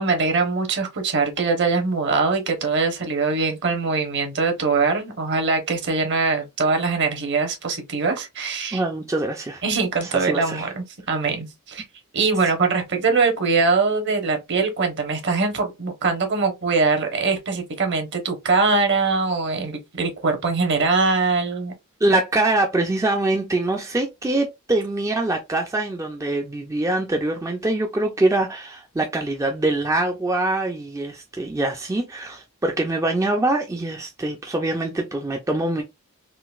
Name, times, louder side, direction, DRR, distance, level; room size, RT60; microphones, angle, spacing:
voice 1, 0.0-8.8 9.6-11.8 12.1-21.7, right 4 dB, 50° right, 1.0 m, -22 dB
voice 2, 8.7-9.6 10.0-10.7 22.0-35.8, right 2 dB, 15° right, 0.4 m, -24 dB
3.8 x 2.4 x 2.4 m
head